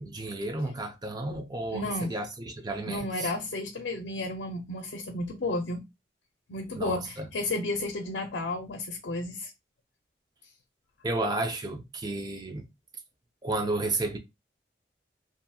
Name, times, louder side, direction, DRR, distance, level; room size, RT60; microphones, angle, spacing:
voice 1, 0.0-3.3 6.7-7.3 11.0-12.7 13.4-14.2, right 2 dB, 20° right, 0.4 m, -32 dB
voice 2, 1.7-2.1 2.9-5.8 6.5-9.5, left 2 dB, 85° left, 0.5 m, -32 dB
2.7 x 2.6 x 2.2 m
head